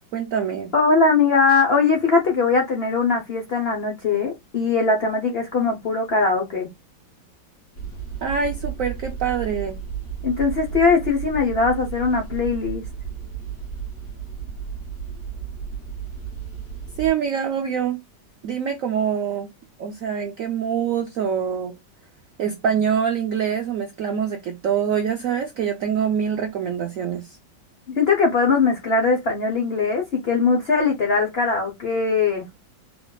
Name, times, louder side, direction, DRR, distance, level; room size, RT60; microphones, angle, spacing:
voice 1, 0.1-0.7 8.2-9.8 17.0-18.0 18.4-19.5 19.8-21.7 22.4-27.4, right 7 dB, 75° right, 0.7 m, -25 dB
voice 2, 0.7-6.7 10.2-12.8 27.9-32.4, left 4 dB, 75° left, 0.5 m, -20 dB
sound 1, 7.7-17.1, right 7 dB, 45° left, 2.0 m, -33 dB
4.0 x 3.0 x 2.2 m
omnidirectional pair, 2.1 m